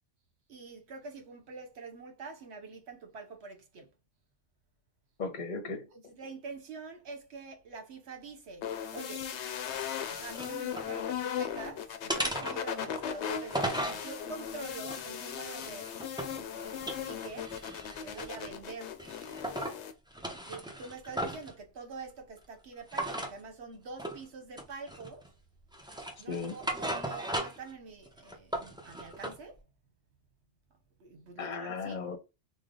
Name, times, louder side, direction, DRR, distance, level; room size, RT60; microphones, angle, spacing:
voice 1, 0.5-3.9 5.9-9.3 10.1-15.9 16.5-17.6 18.0-19.0 20.5-25.3 26.2-29.6 31.0-32.1, right 4 dB, 70° right, 1.2 m, -45 dB
voice 2, 5.2-5.9 26.3-26.5 31.4-32.2, left 4 dB, 45° left, 0.8 m, -36 dB
sound 1, 8.6-19.9, left 8 dB, 75° left, 0.9 m, -38 dB
Firewood looking after, 9.7-10.9 11.3-11.7 12.1-14.0 14.6-16.4 16.8-18.6 19.0-19.8 20.1-21.5 22.9-23.4 24.0-24.2 24.6-25.3 25.7-27.7 28.1-29.4, right 1 dB, 5° right, 0.4 m, -37 dB
3.3 x 2.2 x 3.7 m
omnidirectional pair, 1.2 m